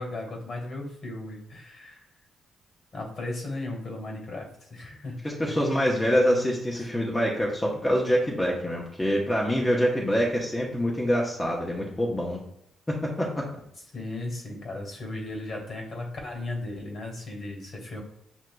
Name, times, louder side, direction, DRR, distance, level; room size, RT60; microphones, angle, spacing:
voice 1, 0.0-2.0 2.9-5.2 5.4-5.5 6.7-6.9 13.9-18.0, left 2 dB, 50° left, 1 dB, 1.6 m, -36 dB
voice 2, 5.2-12.4 12.9-13.5, equal, 15° left, -3 dB, 0.8 m, -25 dB
6.2 x 2.8 x 2.2 m, 0.76 s
cardioid pair, 90°, 0 cm